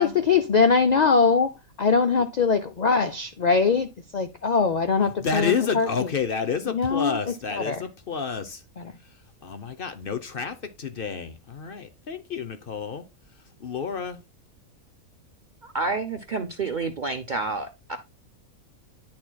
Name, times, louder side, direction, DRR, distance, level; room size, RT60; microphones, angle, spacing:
voice 1, 0.0-3.9 4.1-5.9 6.7-7.2 7.6-7.8 8.8-8.9, left 5 dB, 65° left, 0.4 m, -22 dB
voice 2, 5.0-8.6 9.4-13.0 13.6-14.2, left 5 dB, 50° left, 0.8 m, -30 dB
voice 3, 15.6-18.0, right 3 dB, 50° right, 0.5 m, -29 dB
10.5 x 4.4 x 2.2 m
omnidirectional pair, 1.5 m